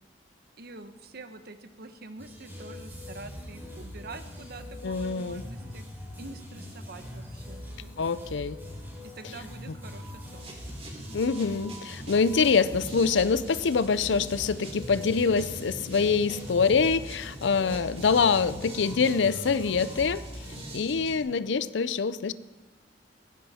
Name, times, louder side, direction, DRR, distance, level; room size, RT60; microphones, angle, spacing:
voice 1, 0.6-5.8 6.2-8.1 9.0-10.5, right 2 dB, 60° right, 9 dB, 1.1 m, -46 dB
sound 1, 2.2-20.7, left 1 dB, 10° right, 4.1 m, -42 dB
voice 2, 4.8-5.4 8.0-8.6 11.1-20.2 20.7-22.3, left 5 dB, 75° left, 16 dB, 0.5 m, -25 dB
sound 2, 10.4-21.2, right 1 dB, 35° right, 3.4 m, -44 dB
17.0 x 15.5 x 4.3 m, 1.2 s
head